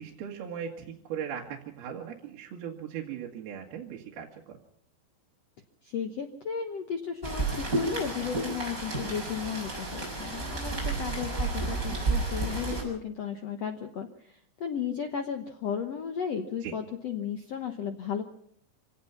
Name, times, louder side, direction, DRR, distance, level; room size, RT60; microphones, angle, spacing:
voice 1, 0.0-4.6 10.9-11.0 16.6-16.8, right 8 dB, 70° right, 0 dB, 3.7 m, -38 dB
voice 2, 5.8-18.2, left 7 dB, 70° left, 6 dB, 1.6 m, -34 dB
Rain, 7.2-12.8, right 3 dB, 20° right, 6.7 m, -31 dB
25.5 x 18.0 x 5.8 m, 0.66 s
omnidirectional pair, 4.7 m